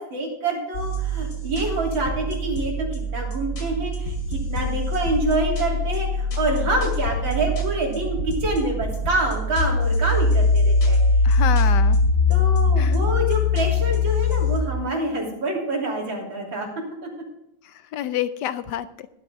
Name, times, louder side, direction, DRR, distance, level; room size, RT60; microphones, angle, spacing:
voice 1, 0.0-11.0 12.3-16.7 17.0-17.1, right 2 dB, 90° right, -1 dB, 3.8 m, -26 dB
sound 1, 0.7-14.6, left 2 dB, 55° left, 2.9 m, -22 dB
voice 2, 11.2-12.0 12.8-13.0 17.6-19.1, left 11 dB, 75° left, 13 dB, 1.1 m, -28 dB
12.0 x 12.0 x 3.6 m, 0.84 s
omnidirectional pair, 2.1 m